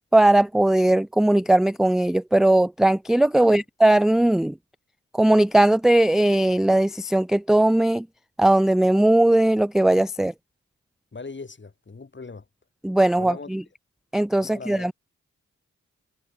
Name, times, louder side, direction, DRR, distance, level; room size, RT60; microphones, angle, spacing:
voice 1, 0.1-4.5 5.1-8.1 8.4-10.3 12.8-13.6 14.1-14.9, right 1 dB, ahead, 0.3 m, -19 dB
voice 2, 11.1-12.5 13.1-13.5 14.4-14.9, left 4 dB, 40° left, 2.9 m, -39 dB
supercardioid pair, 45°, 30 cm